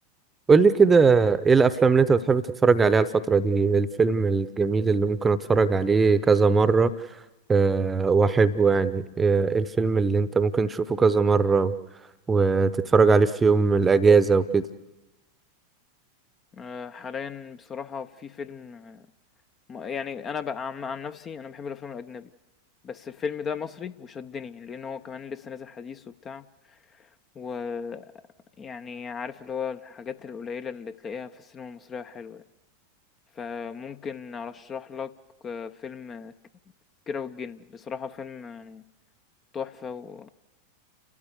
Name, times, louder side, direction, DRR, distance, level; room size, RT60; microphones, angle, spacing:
voice 1, 0.5-6.9 7.5-11.7 12.3-14.7, right 4 dB, 15° right, 0.9 m, -20 dB
voice 2, 16.5-19.1 19.7-22.3 22.8-27.1 27.4-28.1 28.6-32.4 33.3-35.1 35.4-36.3 37.1-38.8 39.5-40.3, left 6 dB, 25° left, 0.7 m, -36 dB
30.0 x 13.5 x 8.2 m
figure-of-eight pair, 90°, 0 cm